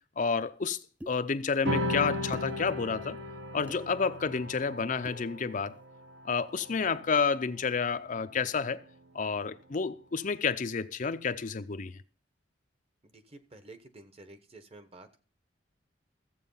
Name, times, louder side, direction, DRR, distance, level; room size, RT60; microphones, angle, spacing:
voice 1, 0.2-0.8 1.1-3.2 3.5-5.7 6.2-8.8 9.1-12.0, left 5 dB, 40° left, 0.5 m, -30 dB
sound 1, 1.0-1.2 2.3-2.5 3.7-3.8 5.0-5.3, equal, 10° right, 0.5 m, -43 dB
sound 2, 1.6-8.4, left 1 dB, 65° right, 1.1 m, -37 dB
voice 2, 13.0-15.2, right 2 dB, 30° right, 1.0 m, -51 dB
14.0 x 7.7 x 5.5 m
head